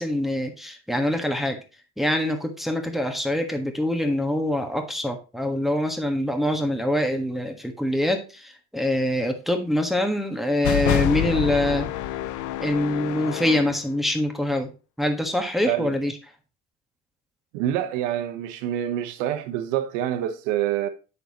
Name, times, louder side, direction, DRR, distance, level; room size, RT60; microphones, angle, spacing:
voice 1, 0.0-1.6 2.0-11.9 12.6-14.7 15.0-16.1, left 1 dB, ahead, 1.4 m, -24 dB
sound 1, 10.6-13.8, left 14 dB, 60° left, 0.6 m, -27 dB
voice 2, 15.7-16.0 17.5-20.9, right 11 dB, 85° right, 1.1 m, -26 dB
7.8 x 6.6 x 2.9 m
supercardioid pair, 80°, 35 cm